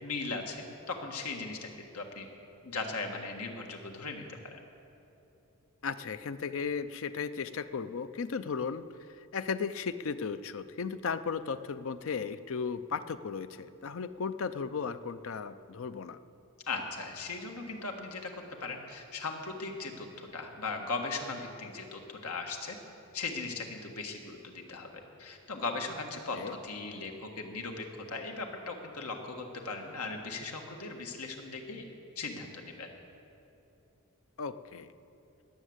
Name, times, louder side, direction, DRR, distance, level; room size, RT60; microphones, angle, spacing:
voice 1, 0.0-1.7 1.9-2.3 2.6-4.6 16.7-18.3 18.6-22.8 23.1-24.9 25.2-31.8 32.1-32.9, left 3 dB, 90° left, 3 dB, 1.7 m, -38 dB
voice 2, 5.8-8.9 9.2-16.2 26.3-26.6 34.4-34.9, left 5 dB, 60° left, 12 dB, 0.5 m, -35 dB
20.0 x 7.4 x 8.0 m, 2.8 s
head